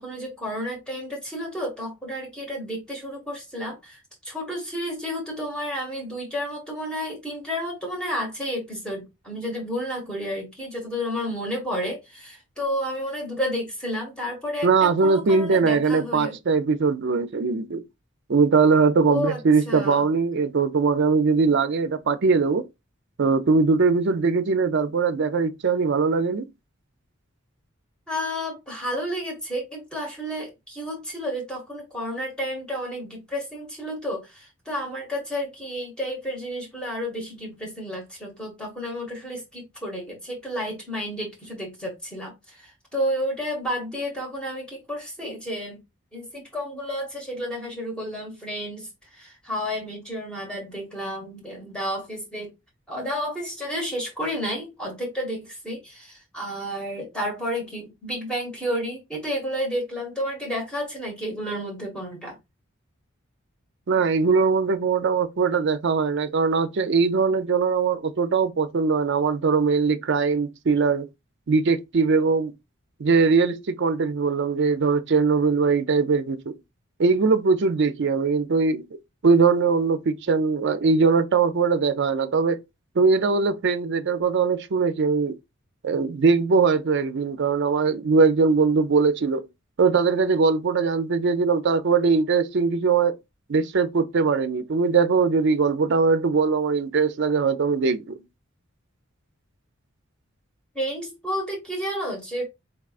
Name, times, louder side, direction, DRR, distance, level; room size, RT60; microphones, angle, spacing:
voice 1, 0.0-16.4 19.0-20.1 28.1-45.8 46.1-52.5 52.9-62.4 100.7-102.4, equal, 5° left, 1.5 m, -31 dB
voice 2, 14.6-17.8 18.3-22.7 23.2-26.5 63.9-71.1 71.5-72.5 73.0-76.6 77.0-82.6 83.0-85.3 85.8-89.4 89.8-93.2 93.5-98.2, right 4 dB, 55° right, 0.5 m, -21 dB
4.7 x 3.6 x 2.4 m
head